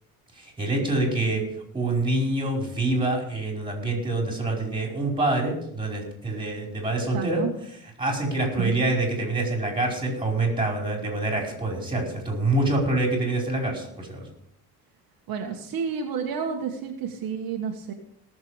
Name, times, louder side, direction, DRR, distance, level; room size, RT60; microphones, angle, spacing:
voice 1, 0.4-1.4 1.7-7.4 8.0-14.2, right 2 dB, 15° right, 0 dB, 5.1 m, -26 dB
voice 2, 7.1-7.5 8.6-8.8 15.3-17.9, right 6 dB, 65° right, 1 dB, 1.8 m, -30 dB
18.5 x 7.4 x 5.1 m, 0.73 s
cardioid pair, 120°, 38 cm